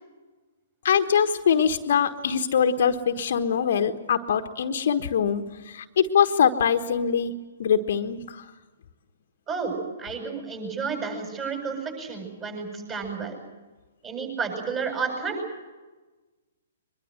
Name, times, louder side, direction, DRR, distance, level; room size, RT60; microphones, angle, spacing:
voice 1, 0.8-7.3 7.6-8.5, left 7 dB, 55° left, 7 dB, 1.3 m, -23 dB
voice 2, 9.5-13.4 14.0-15.4, right 5 dB, 25° right, 3 dB, 7.8 m, -31 dB
23.5 x 22.5 x 7.9 m, 1.2 s
figure-of-eight pair, 120°, 0 cm